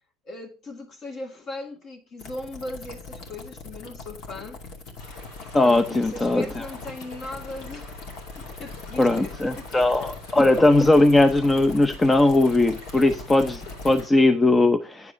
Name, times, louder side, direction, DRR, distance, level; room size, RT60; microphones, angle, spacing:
voice 1, 0.3-4.6 5.6-8.0 8.4-10.1, left 2 dB, 40° left, 2.3 m, -38 dB
sound 1, 2.2-14.0, left 3 dB, 60° left, 2.5 m, -40 dB
sound 2, 5.0-14.1, left 2 dB, 75° left, 4.5 m, -46 dB
voice 2, 5.5-6.6 9.0-15.1, left 2 dB, 15° left, 0.7 m, -19 dB
9.6 x 4.8 x 6.0 m
supercardioid pair, 115°, 0 cm